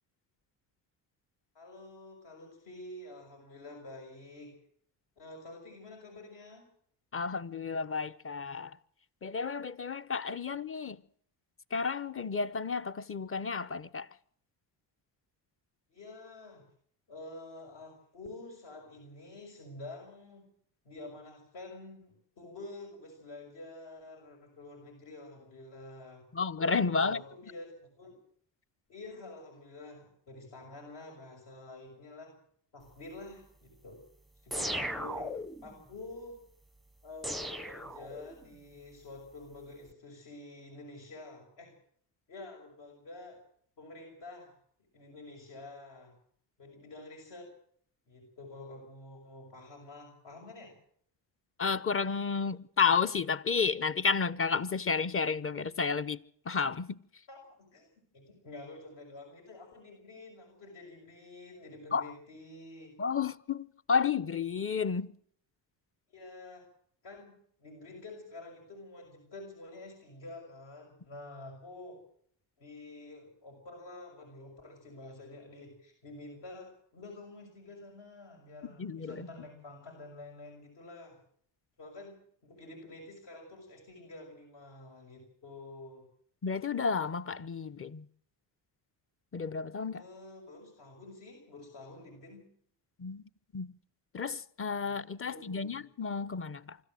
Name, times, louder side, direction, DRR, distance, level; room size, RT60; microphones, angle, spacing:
voice 1, 1.5-4.5 5.2-6.7 15.9-16.6 17.1-20.5 20.8-26.2 26.8-28.2 28.9-32.4 32.7-34.0 34.4-35.3 35.6-36.4 37.0-41.7 42.3-43.4 43.8-44.5 44.9-46.1 46.6-47.5 48.1-50.7 57.3-57.9 58.1-63.0 66.1-66.7 67.0-72.0 72.6-81.2 81.8-86.1 89.9-92.5 94.8-95.0 95.3-95.8, left 2 dB, 65° left, 6.1 m, -48 dB
voice 2, 7.1-8.8 9.2-11.0 11.7-14.1 26.3-27.2 51.6-57.0 61.9-62.1 63.0-65.1 78.8-79.3 86.4-88.1 89.3-90.0 93.0-93.7 94.1-96.8, left 5 dB, 30° left, 0.9 m, -32 dB
sound 1, 34.5-35.7 37.2-38.5, equal, ahead, 0.8 m, -37 dB
25.0 x 13.5 x 7.7 m
supercardioid pair, 80°, 47 cm